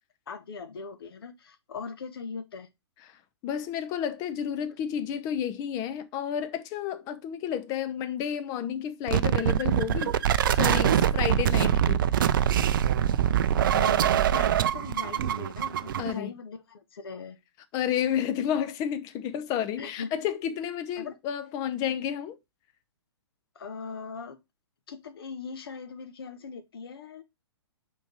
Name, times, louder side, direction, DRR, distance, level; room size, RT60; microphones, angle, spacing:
voice 1, 0.3-2.7 13.7-17.4 19.8-20.1 21.0-21.2 23.5-24.4 24.9-27.2, left 5 dB, 60° left, 1.2 m, -40 dB
voice 2, 3.4-10.1 10.5-12.0 16.0-16.3 17.7-22.4, left 9 dB, 25° left, 0.7 m, -31 dB
sound 1, 9.1-16.1, right 10 dB, 50° right, 0.4 m, -24 dB
5.3 x 4.6 x 4.4 m
figure-of-eight pair, 120°, 14 cm